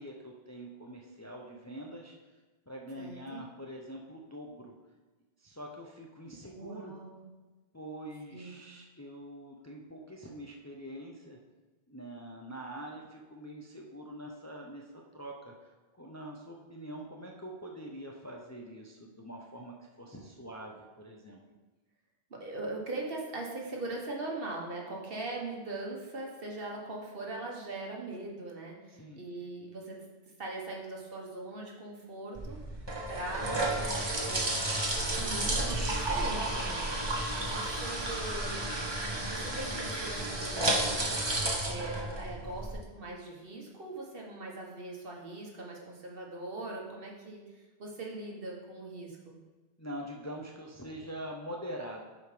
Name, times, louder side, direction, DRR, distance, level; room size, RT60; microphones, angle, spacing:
voice 1, 0.0-2.1 2.7-4.7 5.4-7.0 7.7-11.4 11.9-21.4 28.9-29.2 49.8-52.1, equal, 20° left, 0 dB, 0.6 m, -44 dB
voice 2, 3.0-3.4 6.5-7.2 8.3-8.6 22.3-30.0 30.4-32.6 33.1-34.7 35.0-38.6 39.2-41.0 41.6-49.4, right 2 dB, 60° right, -1 dB, 1.6 m, -41 dB
sound 1, 32.3-42.7, right 1 dB, 25° right, 1.1 m, -32 dB
7.8 x 5.0 x 5.1 m, 1.2 s
omnidirectional pair, 1.1 m